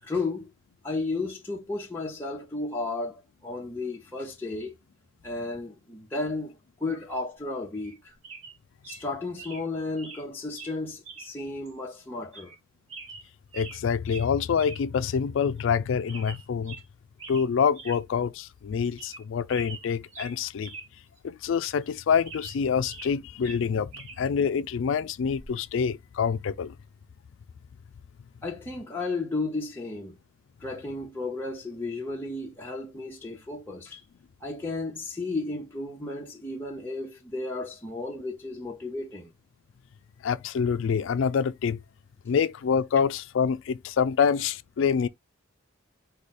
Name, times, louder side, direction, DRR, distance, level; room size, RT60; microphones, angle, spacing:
voice 1, 0.0-0.5 0.8-4.7 5.2-8.1 8.9-12.5 28.4-30.2 30.6-34.0 34.4-39.3, left 3 dB, 10° left, 0.8 m, -33 dB
sound 1, 7.8-8.0 8.2-8.6 8.8-9.0 9.4-9.7 10.0-10.2 10.6-10.7 11.0-11.3 11.6-11.7 12.3-12.6 12.9-13.8 14.1-14.3 14.6-14.8 15.1-15.2 15.6-15.8 16.1-16.8 17.2-17.5 17.7-18.0 18.4-18.5 18.8-19.2 19.5-20.9 21.2-21.3 21.8-23.1 23.4-24.2 25.4-25.6, right 4 dB, 80° right, 1.2 m, -44 dB
voice 2, 13.5-16.8 17.3-20.7 21.2-23.9 24.2-26.7 40.2-41.8 42.3-45.1, left 6 dB, 65° left, 0.3 m, -26 dB
4.8 x 2.2 x 4.1 m
head